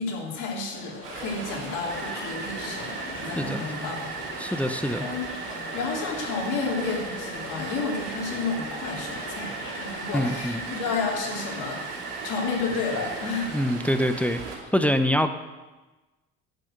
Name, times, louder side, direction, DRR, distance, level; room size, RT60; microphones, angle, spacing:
voice 1, 0.0-4.3 4.6-5.2 5.7-12.0 12.2-13.6, left 4 dB, 60° left, -2 dB, 3.6 m, -31 dB
sound 1, 0.7-9.9, left 3 dB, 35° left, 2.4 m, -42 dB
Stream, 1.0-14.6, right 4 dB, 85° right, 2.5 m, -38 dB
sound 2, 1.9-13.5, right 3 dB, 30° right, 2.1 m, -40 dB
voice 2, 3.4-3.7 4.4-5.1 10.1-10.6 13.5-14.4 14.7-15.3, equal, 5° left, 8 dB, 0.9 m, -24 dB
10.5 x 6.2 x 8.0 m, 1.2 s
hypercardioid pair, 65°, 34 cm